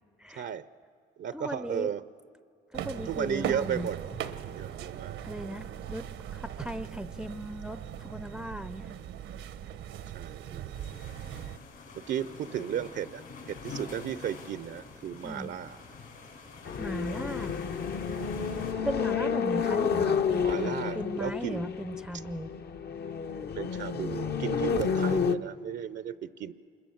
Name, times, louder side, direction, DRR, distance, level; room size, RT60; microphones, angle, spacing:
voice 1, 0.3-0.7 1.2-2.0 3.1-4.0 4.6-5.6 10.1-10.7 11.9-15.8 20.4-21.7 23.6-26.5, right 9 dB, 65° right, 15 dB, 0.6 m, -35 dB
voice 2, 1.3-1.9 2.7-3.9 5.2-6.0 6.3-8.9 15.2-15.5 16.8-17.5 18.8-22.5, equal, 5° right, 13 dB, 0.5 m, -37 dB
sound 1, 2.7-11.6, right 9 dB, 85° right, 1.0 m, -39 dB
sound 2, 10.7-18.7, left 4 dB, 85° left, 6.4 m, -45 dB
sound 3, 16.7-25.4, left 6 dB, 55° left, 0.9 m, -30 dB
26.5 x 21.5 x 7.2 m, 2.3 s
cardioid pair, 90°, 20 cm